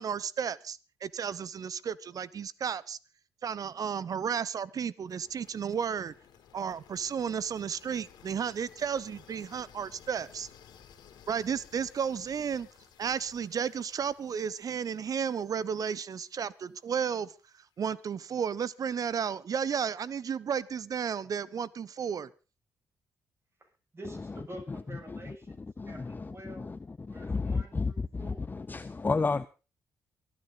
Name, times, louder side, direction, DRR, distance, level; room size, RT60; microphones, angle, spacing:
voice 1, 0.0-3.0 3.4-6.1 6.5-10.5 11.3-12.7 13.0-17.3 17.8-22.3, right 7 dB, 55° right, 0.9 m, -33 dB
sound 1, 5.1-17.0, left 8 dB, 75° left, 2.6 m, -57 dB
voice 2, 23.6-26.7 27.1-28.5, right 1 dB, 35° right, 7.0 m, -48 dB
voice 3, 25.8-26.8 27.1-29.5, left 4 dB, 25° left, 0.6 m, -32 dB
24.0 x 9.7 x 4.0 m
hypercardioid pair, 45°, 7 cm